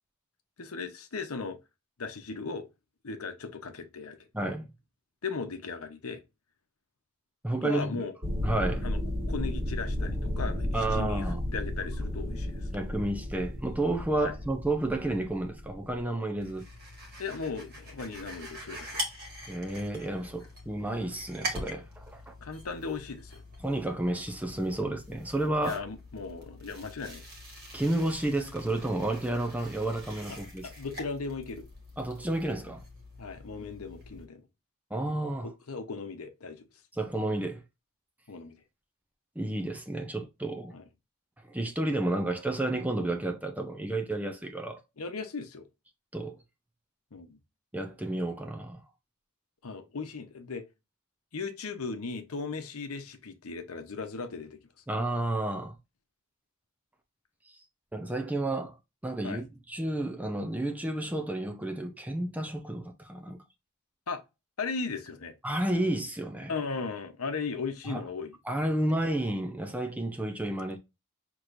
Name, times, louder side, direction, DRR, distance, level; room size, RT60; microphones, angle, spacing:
voice 1, 0.6-1.6 2.0-2.7 3.0-4.2 5.2-6.2 7.6-8.1 8.8-9.0 9.3-12.7 14.2-14.3 17.2-19.0 22.4-23.4 25.6-27.2 30.3-30.4 30.6-31.7 33.2-34.4 35.4-36.7 38.3-38.5 40.7-40.8 45.0-45.7 47.1-47.4 49.6-50.7 51.3-54.6 59.2-59.4 64.1-64.2 64.6-65.3 66.5-68.3, left 4 dB, 80° left, 0.8 m, -37 dB
voice 2, 4.3-4.7 7.4-8.1 8.4-8.8 10.7-11.4 12.7-16.7 19.5-22.3 23.6-25.8 27.7-30.7 32.0-32.8 34.9-35.5 37.0-37.6 39.4-40.7 41.4-44.8 46.1-46.4 47.7-48.8 54.9-55.7 57.9-58.7 59.0-63.4 65.4-66.5 67.9-68.0 68.5-70.8, right 1 dB, 5° right, 0.5 m, -31 dB
sound 1, 8.2-16.0, left 1 dB, 25° right, 1.6 m, -33 dB
sound 2, 16.4-34.3, equal, 45° right, 1.5 m, -44 dB
6.2 x 3.0 x 2.5 m
head